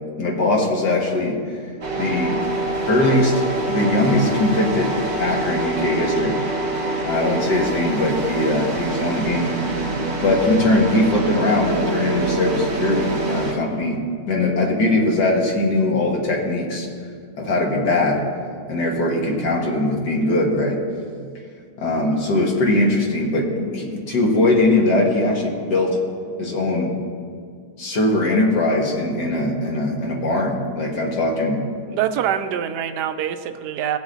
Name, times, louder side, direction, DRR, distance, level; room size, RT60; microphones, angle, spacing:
voice 1, 0.2-1.4 1.9-2.4 2.9-6.4 7.0-9.9 10.2-14.0 14.3-16.9 17.4-18.3 18.7-20.8 21.8-26.0 26.4-26.9 27.8-31.7, left 2 dB, 90° left, -1 dB, 2.0 m, -21 dB
sound 1, 1.8-13.5, right 2 dB, 45° right, 1.8 m, -25 dB
voice 2, 31.9-34.0, right 9 dB, 85° right, 9 dB, 1.2 m, -24 dB
17.5 x 7.1 x 2.7 m, 2.1 s
omnidirectional pair, 1.8 m